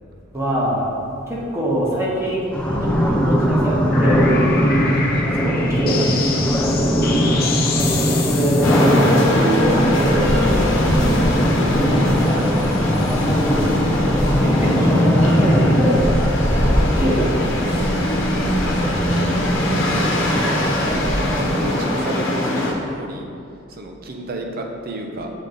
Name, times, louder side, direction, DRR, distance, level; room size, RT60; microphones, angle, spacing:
voice 1, 0.3-0.8 1.3-4.4 5.4-6.5 8.2-11.6 12.8-13.2 14.4-16.1 16.9-17.3 17.8-17.9 18.7-19.2, right 1 dB, 15° right, -6 dB, 1.1 m, -24 dB
sound 1, 2.5-21.8, equal, 5° left, 0.5 m, -20 dB
sound 2, 3.6-10.1, left 4 dB, 50° left, 0.6 m, -28 dB
voice 2, 4.8-5.3 7.2-7.4 12.2-12.5 17.2-17.4 19.2-19.4 21.3-23.3 23.7-25.3, right 1 dB, 50° right, 2 dB, 0.7 m, -31 dB
sound 3, 8.6-22.7, left 1 dB, 80° left, 1.0 m, -22 dB
7.2 x 3.7 x 3.8 m, 2.4 s
head